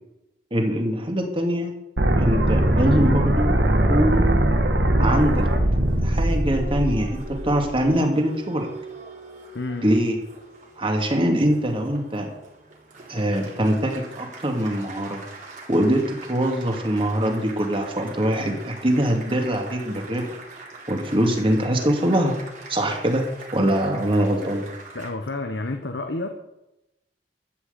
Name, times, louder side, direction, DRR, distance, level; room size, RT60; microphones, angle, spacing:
voice 1, 0.5-1.7 2.2-3.6 3.8-4.4 5.0-5.5 6.0-8.7 9.8-10.2 10.8-12.3 13.1-15.2 15.7-20.4 20.9-22.3 22.7-24.7, right 1 dB, 30° right, 2 dB, 2.5 m, -23 dB
sound 1, 2.0-7.9, right 1 dB, 80° right, 1.7 m, -21 dB
Applause, 5.1-25.1, right 2 dB, 45° right, 3.5 m, -42 dB
voice 2, 9.5-9.9 24.9-26.3, left 2 dB, 75° left, 5 dB, 1.1 m, -29 dB
13.0 x 6.5 x 8.3 m, 0.90 s
head